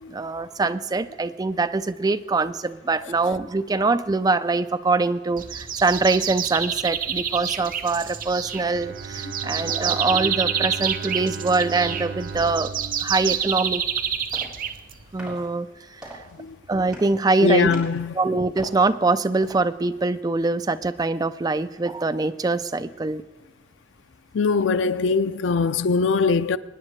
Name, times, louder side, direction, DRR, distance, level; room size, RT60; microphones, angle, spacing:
voice 1, 0.1-12.7 13.0-13.8 15.1-15.7 16.0-16.1 16.7-17.7 18.2-23.2, right 3 dB, 20° right, 0.4 m, -23 dB
sound 1, 5.4-15.2, right 8 dB, 45° right, 0.7 m, -28 dB
Bowed string instrument, 8.5-14.4, right 5 dB, 80° right, 0.7 m, -37 dB
voice 2, 9.4-10.0 16.4-16.6 17.4-18.1 24.3-26.6, left 4 dB, 85° left, 0.5 m, -22 dB
sound 2, 13.9-20.0, right 1 dB, 5° right, 3.7 m, -45 dB
25.0 x 9.8 x 3.2 m
head